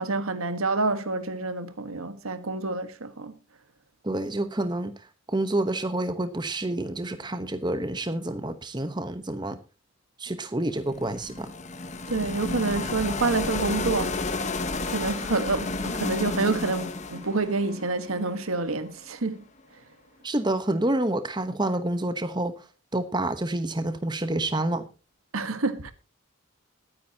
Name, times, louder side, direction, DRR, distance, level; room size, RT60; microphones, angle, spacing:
voice 1, 0.0-3.3 12.1-14.2 14.9-19.4 25.3-25.9, right 3 dB, 85° right, 1.4 m, -28 dB
voice 2, 4.0-4.9 5.3-9.6 10.2-11.5 20.2-22.5 22.9-24.9, right 1 dB, 20° right, 1.0 m, -28 dB
sound 1, 10.8-18.8, left 3 dB, 35° left, 1.2 m, -32 dB
21.5 x 9.7 x 2.8 m
head